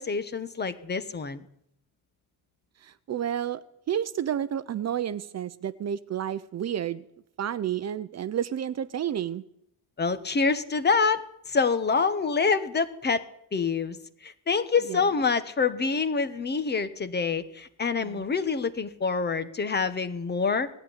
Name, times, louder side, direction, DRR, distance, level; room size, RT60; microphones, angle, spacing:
voice 1, 0.0-1.4 10.0-13.2 13.5-20.7, left 5 dB, 25° left, 14 dB, 1.2 m, -26 dB
voice 2, 2.8-7.0 7.4-9.4 14.9-15.0 18.0-18.2, right 10 dB, 40° right, 14 dB, 0.7 m, -31 dB
19.5 x 14.0 x 9.8 m, 0.72 s
cardioid pair, 175°, 40 cm